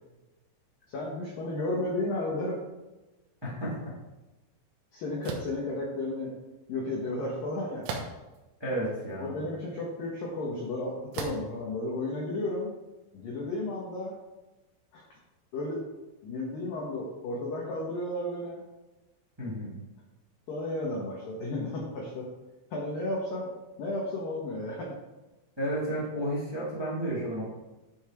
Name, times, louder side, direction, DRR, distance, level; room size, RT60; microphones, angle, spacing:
voice 1, 0.9-2.6 4.9-6.3 6.7-7.9 9.2-12.7 13.1-14.2 14.9-15.0 15.5-15.8 16.2-18.6 20.5-22.3 22.7-23.5 23.8-25.0, left 2 dB, 70° left, -3 dB, 2.2 m, -33 dB
voice 2, 3.4-3.7 8.6-9.4 19.4-19.7 25.6-27.4, right 1 dB, 10° right, -7 dB, 1.7 m, -32 dB
sound 1, 5.2-5.6 7.8-8.4 9.1-9.2 11.1-11.5, right 4 dB, 80° right, 3.9 m, -36 dB
11.5 x 5.7 x 4.6 m, 1.1 s
omnidirectional pair, 6.0 m